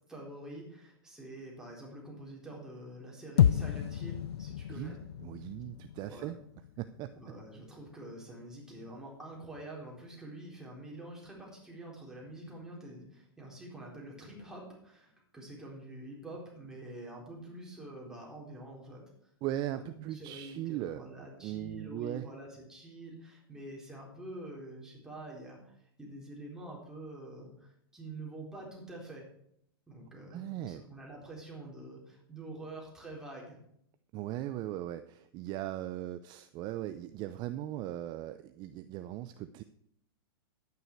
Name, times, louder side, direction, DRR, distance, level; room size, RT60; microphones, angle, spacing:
voice 1, 0.1-5.0 6.1-6.3 7.1-19.0 19.7-29.2 29.9-33.6, right 1 dB, 5° right, -3 dB, 4.1 m, -46 dB
sound 1, 3.4-7.7, left 9 dB, 90° left, 0.4 m, -31 dB
voice 2, 4.7-6.4 6.8-7.1 19.4-22.3 30.3-30.8 34.1-39.6, right 13 dB, 35° right, 11 dB, 0.5 m, -39 dB
11.0 x 9.5 x 4.7 m, 0.72 s
hypercardioid pair, 130°, 13 cm